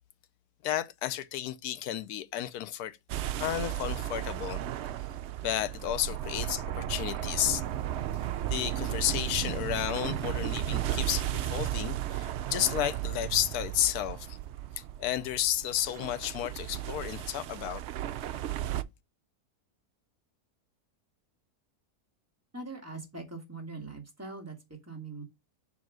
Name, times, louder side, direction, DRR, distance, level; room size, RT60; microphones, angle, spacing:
voice 1, 0.6-3.0 3.4-4.6 5.4-7.6 8.5-14.4 15.0-17.8, left 11 dB, 80° left, 1.2 m, -32 dB
sound 1, 3.1-18.8, right 12 dB, 75° right, 0.6 m, -34 dB
voice 2, 22.5-25.2, right 3 dB, 10° right, 1.8 m, -42 dB
7.3 x 3.1 x 6.1 m
omnidirectional pair, 1.6 m